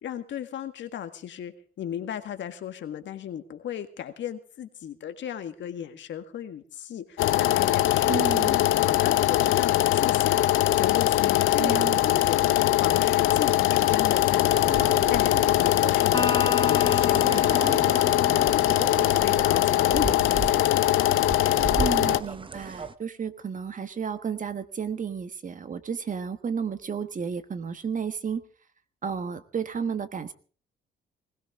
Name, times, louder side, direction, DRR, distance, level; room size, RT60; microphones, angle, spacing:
voice 1, 0.0-10.4 10.8-17.9 18.2-18.7 19.2-20.8, left 9 dB, 70° left, 8 dB, 1.8 m, -36 dB
sound 1, 7.2-22.2, left 14 dB, 85° left, 0.7 m, -22 dB
voice 2, 8.1-8.6 11.6-12.0 21.8-28.4 29.0-30.3, right 6 dB, 40° right, 11 dB, 1.4 m, -32 dB
sound 2, 13.8-22.9, right 4 dB, 25° right, 0.9 m, -36 dB
Electric guitar, 16.1-19.7, left 3 dB, 20° left, 3.0 m, -34 dB
20.0 x 17.0 x 3.7 m, 0.41 s
cardioid pair, 90°, 20 cm